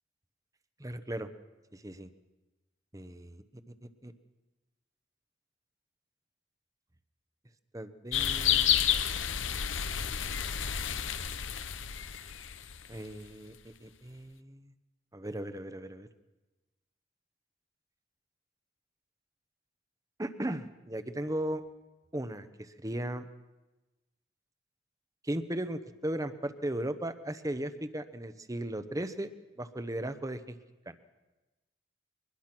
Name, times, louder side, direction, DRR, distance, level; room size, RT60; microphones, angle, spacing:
voice 1, 0.8-1.3 1.7-2.1 2.9-3.4 3.8-4.1 7.7-9.1 12.9-14.7 15.1-16.1 20.2-21.6 22.1-23.3 25.2-29.3 29.6-30.5 30.9-31.0, right 1 dB, 20° right, 11 dB, 1.0 m, -37 dB
sound 1, 8.1-13.1, left 9 dB, 85° left, 1.0 m, -30 dB
23.0 x 20.5 x 6.1 m, 1.1 s
head